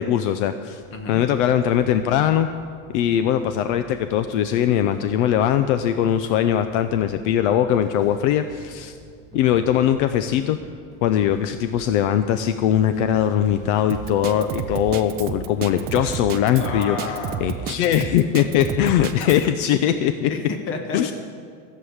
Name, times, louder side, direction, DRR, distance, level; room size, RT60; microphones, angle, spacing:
voice 1, 0.0-0.8 1.1-2.5 2.9-9.0 9.3-10.6 11.0-17.0 17.4-20.3 20.9-21.1, left 10 dB, 65° left, 10 dB, 0.6 m, -21 dB
sound 1, 0.8-19.5, right 1 dB, 10° left, 2.1 m, -48 dB
voice 2, 0.9-1.2 16.5-17.8 19.2-19.4 20.3-21.1, left 3 dB, 30° left, 5 dB, 1.4 m, -31 dB
Drum kit, 13.9-19.4, right 9 dB, 25° right, 0.4 m, -31 dB
14.5 x 7.5 x 8.0 m, 2.4 s
cardioid pair, 170°, 39 cm